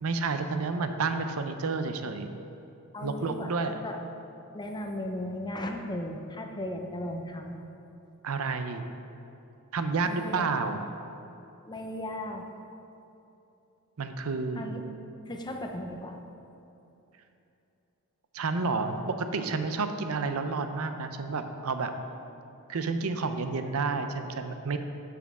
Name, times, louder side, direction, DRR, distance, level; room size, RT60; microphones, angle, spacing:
voice 1, 0.0-2.3 3.0-3.8 8.2-8.8 9.7-10.8 14.0-14.7 18.3-21.9 22.7-24.8, right 4 dB, 70° right, 8 dB, 0.6 m, -30 dB
voice 2, 2.9-4.0 4.5-7.6 10.0-10.5 11.7-12.4 14.6-14.8 15.3-16.2, left 1 dB, 20° left, 3 dB, 0.6 m, -36 dB
12.0 x 6.1 x 3.6 m, 2.8 s
head